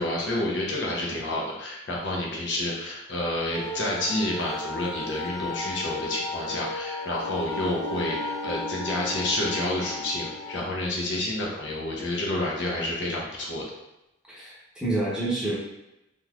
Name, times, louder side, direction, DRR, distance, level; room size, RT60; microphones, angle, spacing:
voice 1, 0.0-13.6, left 1 dB, 60° left, -3 dB, 0.7 m, -29 dB
sound 1, 3.5-10.6, left 2 dB, 20° left, 0.5 m, -34 dB
voice 2, 14.3-15.5, right 2 dB, 5° right, -8 dB, 0.9 m, -28 dB
3.6 x 2.9 x 2.4 m, 0.92 s
head